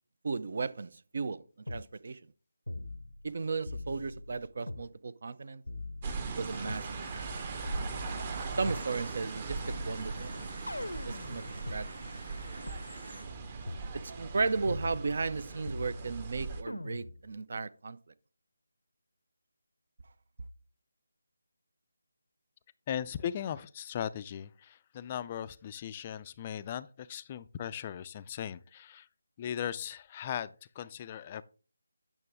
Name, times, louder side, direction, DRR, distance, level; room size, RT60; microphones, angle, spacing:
voice 1, 0.2-1.4 1.7-2.2 3.2-5.6 6.3-7.3 8.6-10.4 11.1-11.9 14.2-18.0, right 4 dB, 50° right, 0.4 m, -35 dB
sound 1, 1.7-1.9 2.7-3.3 3.7-4.9 5.7-6.9 7.7-8.9 9.7-11.8 12.7-12.8 13.7-13.9 14.7-15.4 15.7-16.3 16.7-17.3, left 2 dB, 80° left, 0.6 m, -41 dB
sound 2, 6.0-16.6, right 4 dB, 30° right, 0.8 m, -40 dB
sound 3, 6.4-13.2, right 1 dB, 80° right, 4.6 m, -49 dB
voice 2, 22.9-29.0 29.4-31.4, left 9 dB, 25° left, 0.3 m, -38 dB
8.8 x 6.1 x 3.4 m
figure-of-eight pair, 155°, 0 cm